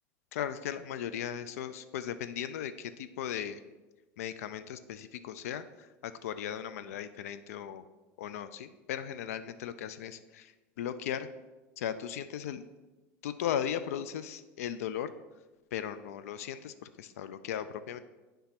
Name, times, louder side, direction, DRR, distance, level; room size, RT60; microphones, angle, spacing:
voice 1, 0.3-3.6 4.2-7.8 8.2-10.5 10.8-11.3 11.8-12.6 13.2-15.1 15.7-18.0, left 9 dB, 85° left, 12 dB, 0.4 m, -37 dB
9.6 x 3.4 x 5.8 m, 1.2 s
supercardioid pair, 105°, 8 cm